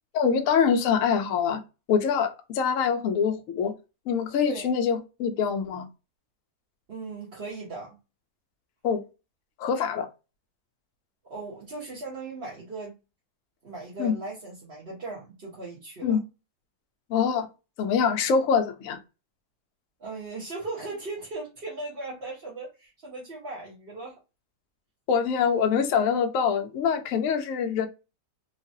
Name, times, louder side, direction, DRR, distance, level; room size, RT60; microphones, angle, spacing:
voice 1, 0.1-1.6 1.9-3.7 4.1-5.9 8.8-9.0 9.6-10.1 14.0-14.1 16.0-16.2 17.1-17.5 17.8-19.0 25.1-27.9, left 6 dB, 65° left, 0.8 m, -24 dB
voice 2, 6.9-8.0 11.3-13.0 13.6-16.2 20.0-24.2, right 3 dB, 40° right, 1.0 m, -38 dB
3.2 x 2.3 x 2.6 m
omnidirectional pair, 1.8 m